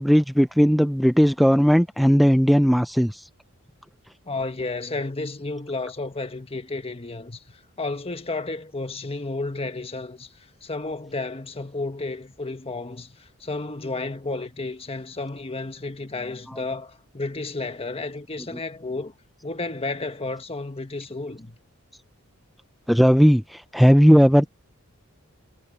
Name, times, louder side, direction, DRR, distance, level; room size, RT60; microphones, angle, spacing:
voice 1, 0.0-3.3 22.9-24.5, equal, ahead, 0.5 m, -17 dB
voice 2, 4.3-10.3 10.6-19.1 19.4-21.6, left 3 dB, 25° left, 1.5 m, -32 dB
head